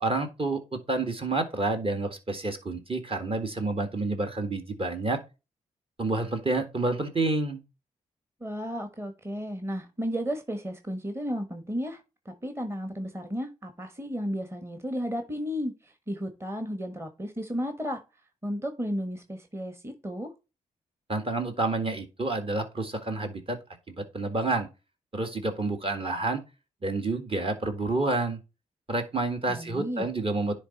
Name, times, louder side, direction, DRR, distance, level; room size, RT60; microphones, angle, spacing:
voice 1, 0.0-5.2 6.0-7.6 21.1-23.6 23.9-24.7 25.1-26.4 26.8-28.4 28.9-30.5, right 2 dB, 35° right, 1.7 m, -29 dB
voice 2, 8.4-18.0 18.4-20.3 29.5-30.1, equal, 15° right, 1.4 m, -33 dB
10.0 x 3.4 x 4.1 m
supercardioid pair, 45°, 15 cm